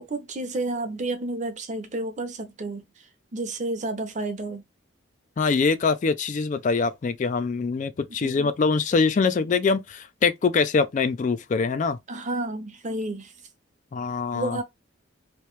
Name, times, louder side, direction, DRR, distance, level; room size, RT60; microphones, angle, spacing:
voice 1, 0.0-2.8 3.3-4.6 8.2-8.5 12.1-13.3 14.3-14.6, right 2 dB, 35° right, 0.7 m, -31 dB
voice 2, 5.4-12.0 13.9-14.6, left 4 dB, 40° left, 0.3 m, -24 dB
3.1 x 2.8 x 3.2 m
head